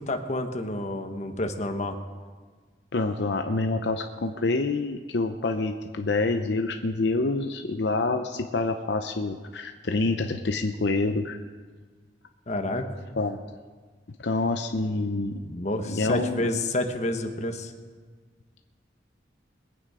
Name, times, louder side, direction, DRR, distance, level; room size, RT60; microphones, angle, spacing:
voice 1, 0.0-2.0 12.5-12.9 15.4-17.7, left 1 dB, 40° left, 5 dB, 1.2 m, -29 dB
voice 2, 2.9-11.4 13.2-13.4 14.2-15.4 15.9-16.5, left 3 dB, 70° left, 5 dB, 0.7 m, -27 dB
22.0 x 9.0 x 4.9 m, 1.5 s
head